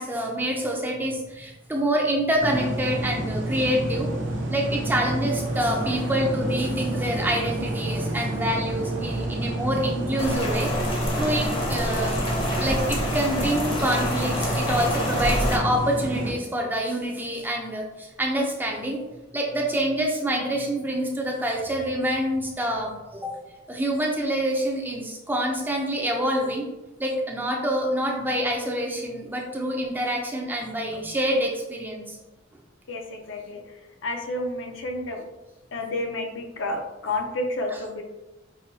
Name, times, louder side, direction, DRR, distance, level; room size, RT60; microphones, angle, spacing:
voice 1, 0.0-4.1 4.5-10.7 11.2-12.2 12.6-19.0 19.3-23.3 23.7-26.6 27.0-32.2 37.7-37.8, right 1 dB, 10° right, 0 dB, 0.5 m, -26 dB
sound 1, 2.4-16.3, right 1 dB, 65° right, 0.7 m, -29 dB
Rain, 10.2-15.6, left 1 dB, 30° left, 0.7 m, -28 dB
voice 2, 32.9-33.6 34.0-35.2 35.7-38.0, left 2 dB, 70° left, 2 dB, 0.6 m, -30 dB
5.5 x 2.2 x 2.7 m, 1.0 s
head